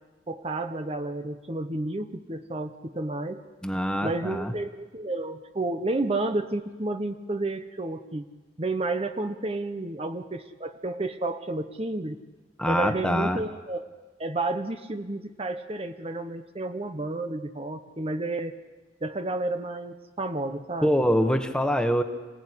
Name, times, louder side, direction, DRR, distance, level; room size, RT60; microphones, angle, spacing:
voice 1, 0.3-3.4 4.0-8.2 8.6-12.2 12.7-13.8 14.2-18.5 19.0-20.9, right 2 dB, 35° right, 9 dB, 1.0 m, -31 dB
voice 2, 3.6-4.5 12.6-13.4 20.8-22.0, equal, 5° left, 6 dB, 1.5 m, -24 dB
26.0 x 17.0 x 10.0 m, 1.2 s
head